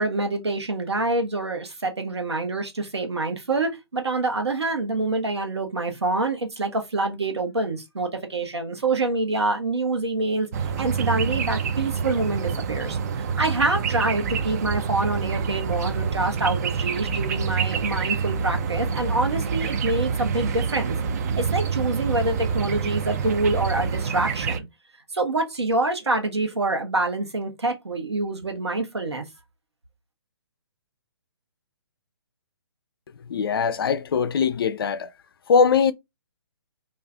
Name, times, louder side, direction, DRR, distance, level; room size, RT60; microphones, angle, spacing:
voice 1, 0.0-10.5 10.8-21.0 21.4-24.7 25.1-29.2, right 2 dB, 85° right, 1.0 m, -26 dB
sound 1, 10.5-24.6, right 6 dB, 40° right, 0.4 m, -27 dB
voice 2, 33.3-35.1 35.5-35.9, left 6 dB, 60° left, 0.4 m, -21 dB
2.4 x 2.4 x 3.3 m
figure-of-eight pair, 135°, 14 cm